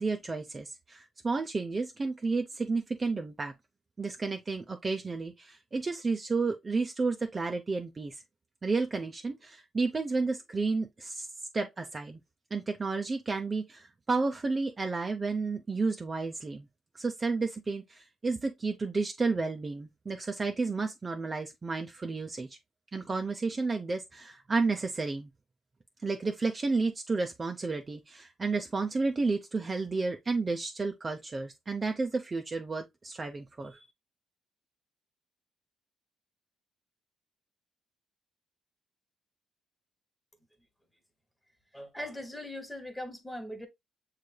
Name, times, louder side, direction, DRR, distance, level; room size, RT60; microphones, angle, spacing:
voice 1, 0.0-3.5 4.0-8.2 8.6-11.3 11.5-12.2 12.5-16.7 16.9-22.5 22.9-25.3 26.0-33.9, right 3 dB, 30° right, 0.6 m, -31 dB
voice 2, 41.7-43.7, left 1 dB, 5° left, 1.2 m, -40 dB
6.6 x 3.3 x 2.2 m
cardioid pair, 90°, 0 cm